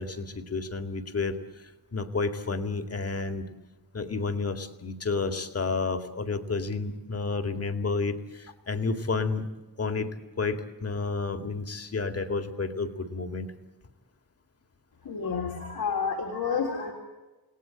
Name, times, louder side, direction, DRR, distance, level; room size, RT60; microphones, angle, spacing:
voice 1, 0.0-3.5 3.9-9.5 9.8-10.1 10.4-13.5, left 4 dB, 40° left, 7 dB, 2.2 m, -31 dB
voice 2, 15.0-16.9, left 5 dB, 75° left, 1 dB, 3.4 m, -30 dB
29.0 x 18.5 x 8.9 m, 1.2 s
wide cardioid pair, 140°, 38 cm